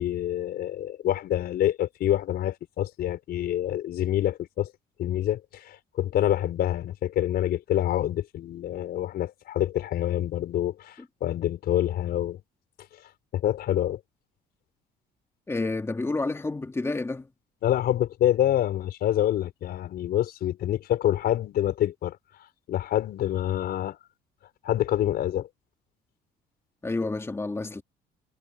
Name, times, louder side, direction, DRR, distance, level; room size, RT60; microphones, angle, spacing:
voice 1, 0.0-4.7 5.0-12.4 13.3-14.0 17.6-22.2 22.7-24.0 24.6-25.5, left 12 dB, 65° left, 5.0 m, -26 dB
voice 2, 15.5-17.3 26.8-27.8, left 3 dB, 15° left, 2.8 m, -29 dB
cardioid pair, 110°, 17 cm